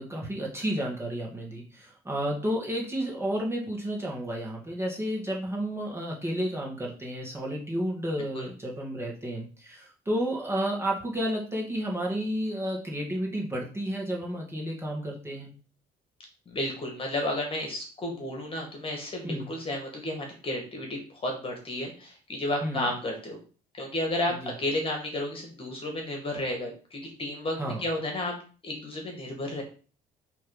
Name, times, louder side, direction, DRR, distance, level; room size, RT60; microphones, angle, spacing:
voice 1, 0.0-15.5 19.2-19.5 22.6-22.9 24.4-24.5 27.6-27.8, equal, 15° right, -2 dB, 2.1 m, -31 dB
voice 2, 16.5-23.4 23.8-28.4 28.6-29.6, left 1 dB, 30° left, 2 dB, 2.0 m, -32 dB
5.1 x 3.4 x 5.5 m, 0.37 s
cardioid pair, 110°, 17 cm